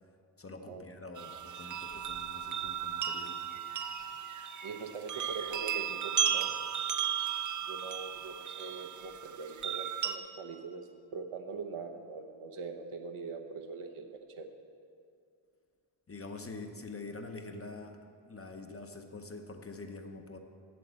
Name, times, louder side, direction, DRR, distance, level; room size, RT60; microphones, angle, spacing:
voice 1, 0.4-3.4 16.1-18.0 18.2-20.4, left 3 dB, 30° left, 5 dB, 0.7 m, -45 dB
sound 1, 1.2-10.2, right 8 dB, 40° right, 0.5 m, -35 dB
voice 2, 4.6-6.5 7.7-14.1 14.4-14.5, right 4 dB, 80° right, 4 dB, 1.0 m, -42 dB
7.7 x 7.6 x 8.1 m, 2.4 s
wide cardioid pair, 125°, 49 cm